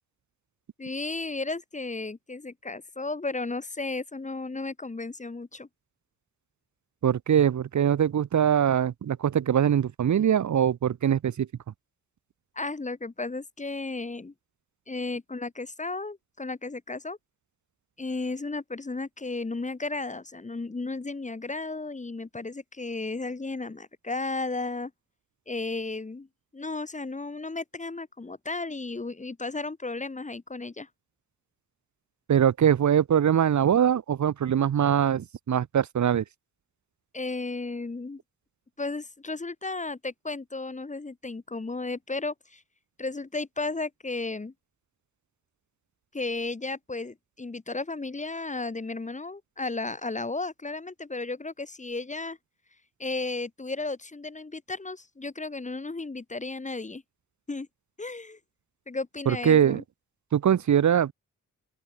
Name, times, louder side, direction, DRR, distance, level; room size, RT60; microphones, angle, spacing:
voice 1, 0.8-5.7 12.6-14.3 14.9-17.2 18.0-24.9 25.5-26.3 26.5-30.9 37.1-38.2 38.8-42.6 43.0-44.5 46.1-52.4 53.0-57.0 57.5-57.7 58.0-58.4 58.9-59.8, left 3 dB, 20° left, 1.1 m, -34 dB
voice 2, 7.0-11.5 32.3-36.2 59.3-59.8 60.3-61.1, right 9 dB, 60° right, 0.8 m, -22 dB
open air
cardioid pair, 65°, 33 cm